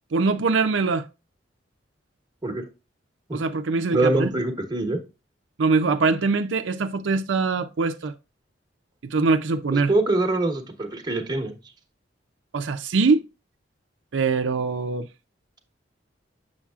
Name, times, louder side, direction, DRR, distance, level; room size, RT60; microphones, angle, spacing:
voice 1, 0.1-1.0 3.3-4.3 5.6-8.1 9.0-9.9 12.5-13.2 14.1-15.1, right 4 dB, 85° right, 0.5 m, -23 dB
voice 2, 3.9-5.0 9.7-11.5, right 2 dB, 25° right, 1.1 m, -24 dB
7.3 x 6.3 x 2.4 m
head